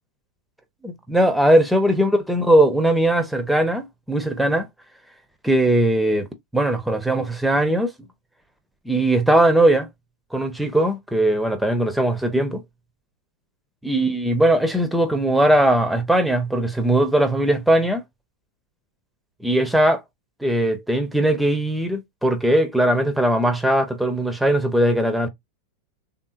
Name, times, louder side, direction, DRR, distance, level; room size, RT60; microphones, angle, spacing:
voice 1, 0.8-4.7 5.4-6.3 6.5-7.9 8.9-9.9 10.3-12.6 13.8-18.0 19.4-20.0 20.4-25.3, right 1 dB, ahead, 0.7 m, -19 dB
3.5 x 2.7 x 2.5 m
figure-of-eight pair, 90°, 0 cm